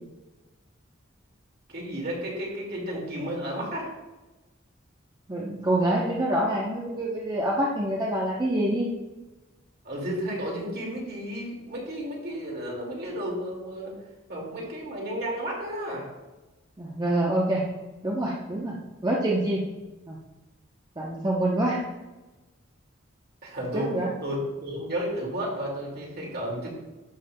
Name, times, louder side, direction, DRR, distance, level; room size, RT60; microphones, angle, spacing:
voice 1, 1.7-3.9 9.8-13.9 14.3-16.1 23.4-24.0 24.2-26.7, equal, 50° right, -2 dB, 2.2 m, -32 dB
voice 2, 5.3-8.9 16.8-17.6 18.0-18.7 19.0-19.6 20.1-20.2 21.0-21.8 23.7-24.1, right 1 dB, 20° right, -3 dB, 0.8 m, -26 dB
11.0 x 6.9 x 2.2 m, 1.1 s
head